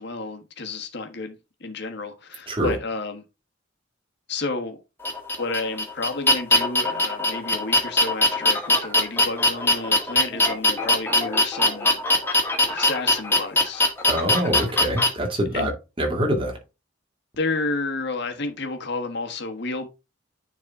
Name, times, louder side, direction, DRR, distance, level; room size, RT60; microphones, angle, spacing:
voice 1, 0.0-3.2 4.3-4.8 5.4-12.0 12.7-13.8 15.5-15.7 17.4-19.9, left 3 dB, 55° left, 1.4 m, -31 dB
sound 1, 5.0-15.1, left 1 dB, 10° left, 1.5 m, -21 dB
voice 2, 14.1-16.6, equal, 25° right, 2.4 m, -25 dB
9.6 x 4.1 x 3.6 m
head